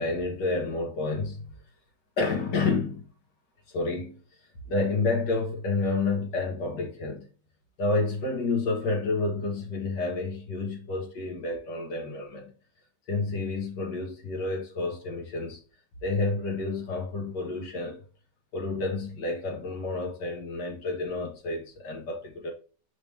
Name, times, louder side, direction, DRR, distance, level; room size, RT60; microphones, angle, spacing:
voice 1, 0.0-1.5 2.2-3.0 3.7-4.2 4.7-7.3 7.8-12.5 13.1-15.6 16.0-18.0 18.5-22.5, left 3 dB, 75° left, 2.4 m, -29 dB
6.3 x 5.0 x 3.5 m
omnidirectional pair, 1.9 m